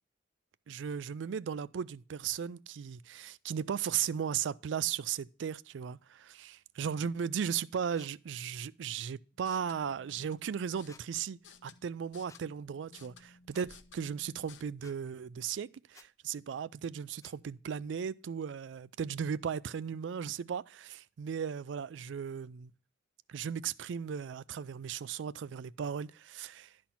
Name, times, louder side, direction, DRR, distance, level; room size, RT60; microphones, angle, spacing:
voice 1, 0.7-22.7 23.3-26.7, right 7 dB, 75° right, 0.4 m, -36 dB
sound 1, 8.0-8.1 9.5-9.7 10.9-11.0 12.3-12.4 13.5-13.7 14.8-15.0 15.9-16.1 17.2-17.4, left 4 dB, 15° left, 0.4 m, -57 dB
sound 2, 9.3-14.6, left 5 dB, 80° left, 0.8 m, -58 dB
11.5 x 4.3 x 5.7 m
head